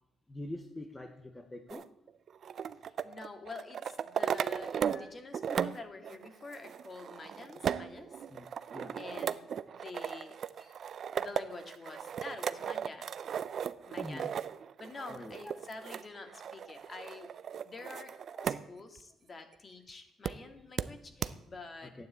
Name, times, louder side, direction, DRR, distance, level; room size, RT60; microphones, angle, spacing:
voice 1, 0.3-1.9 4.8-5.1 8.3-8.5 8.7-9.0 10.6-10.7 14.0-14.3 15.1-15.4 16.7-16.8 18.3-18.5 21.8-22.1, left 1 dB, 15° left, 5 dB, 1.2 m, -45 dB
sound 1, 1.7-5.1 5.3-18.6 19.0-19.1 20.3-20.4 20.8-20.9 21.2-21.3, right 8 dB, 60° right, 0.6 m, -37 dB
voice 2, 3.0-8.2 8.9-10.4 11.0-13.1 13.8-14.3 14.8-17.3 17.6-18.1 18.4-22.1, left 3 dB, 35° left, 6 dB, 2.2 m, -47 dB
12.0 x 9.5 x 8.2 m, 0.85 s
cardioid pair, 90°, 0 cm